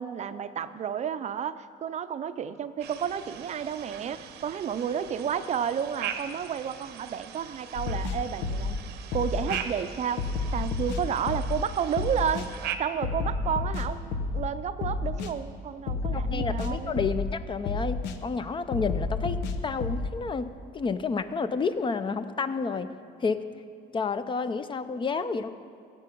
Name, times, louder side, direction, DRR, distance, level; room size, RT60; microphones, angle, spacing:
voice 1, 0.0-8.8 9.1-10.2 10.5-12.5 12.8-17.0, right 8 dB, 45° right, 12 dB, 0.5 m, -31 dB
sound 1, 2.8-12.8, right 9 dB, 80° right, 0.8 m, -40 dB
sound 2, 7.7-8.8 9.1-9.6 10.2-11.6 12.0-12.5 13.0-14.5 14.8-15.3 15.9-17.3 17.6-18.2 18.7-20.1, left 3 dB, 90° left, 0.8 m, -30 dB
voice 2, 16.1-20.5 20.7-22.9 23.2-23.4 23.9-25.5, left 4 dB, 30° left, 11 dB, 0.5 m, -30 dB
15.0 x 8.4 x 5.3 m, 2.4 s
cardioid pair, 110°, 17 cm